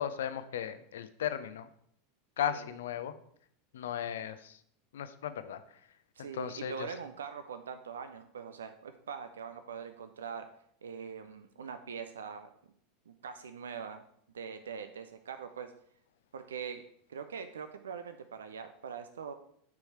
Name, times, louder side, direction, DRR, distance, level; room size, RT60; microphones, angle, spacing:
voice 1, 0.0-1.7 2.4-3.1 3.7-4.6 4.9-5.6 6.3-6.9, left 9 dB, 65° left, 12 dB, 0.5 m, -36 dB
voice 2, 6.2-10.5 10.8-12.5 13.1-14.0 14.3-15.7 16.3-16.8 17.1-19.3, right 6 dB, 75° right, 9 dB, 0.5 m, -42 dB
9.4 x 4.7 x 4.5 m, 0.66 s
figure-of-eight pair, 80°, 0 cm